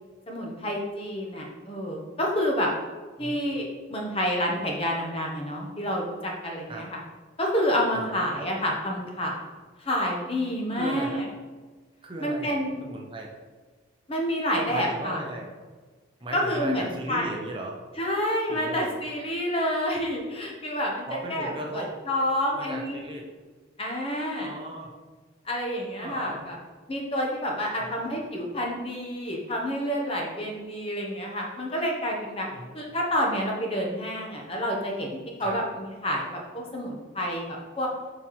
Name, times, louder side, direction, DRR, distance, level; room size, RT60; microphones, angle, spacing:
voice 1, 0.3-2.7 3.2-7.0 7.4-9.4 9.8-11.3 12.2-12.8 14.1-15.2 16.3-17.3 18.0-23.0 23.8-24.6 25.4-26.6 26.9-32.5 32.7-37.9, equal, 30° left, -1 dB, 0.9 m, -29 dB
voice 2, 10.7-11.2 12.0-12.5 12.8-13.3 14.7-15.5 16.2-17.8 18.5-18.9 21.1-21.9 22.5-23.3 24.4-24.9 26.0-26.5 27.8-28.0 32.5-32.7 35.4-35.6, right 1 dB, 25° right, 0 dB, 0.6 m, -37 dB
7.4 x 4.3 x 3.1 m, 1.4 s
head